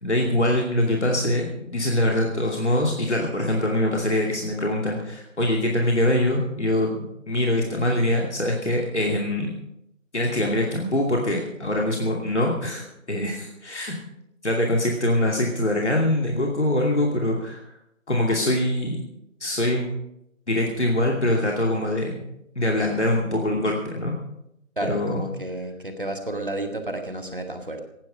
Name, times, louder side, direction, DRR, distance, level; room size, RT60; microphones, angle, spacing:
voice 1, 0.0-9.5 10.1-13.9 14.4-17.6 18.1-19.0 19.4-19.9 20.5-22.2 22.6-24.1 24.8-25.2, left 1 dB, 55° left, -1 dB, 2.6 m, -23 dB
voice 2, 24.8-27.8, right 1 dB, 40° right, 5 dB, 1.9 m, -31 dB
17.0 x 11.5 x 5.4 m, 0.80 s
figure-of-eight pair, 175°, 40 cm